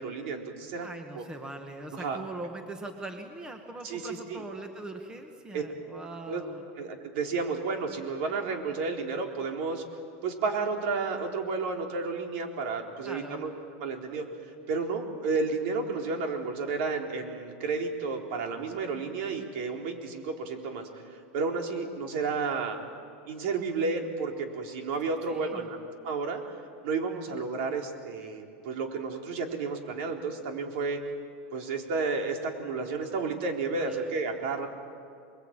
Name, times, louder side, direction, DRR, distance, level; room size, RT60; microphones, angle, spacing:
voice 1, 0.0-0.9 1.1-1.2 1.9-2.2 3.8-4.4 5.5-5.6 6.3-6.4 6.8-9.8 10.2-13.5 13.8-22.8 23.3-25.8 26.0-26.4 26.8-31.0 31.5-34.7, right 4 dB, 65° right, 2 dB, 4.1 m, -32 dB
voice 2, 0.8-6.6 13.0-13.4 25.1-25.7 33.7-34.0, right 2 dB, 10° right, 5 dB, 1.8 m, -41 dB
28.5 x 22.0 x 9.1 m, 2.3 s
supercardioid pair, 150°, 7 cm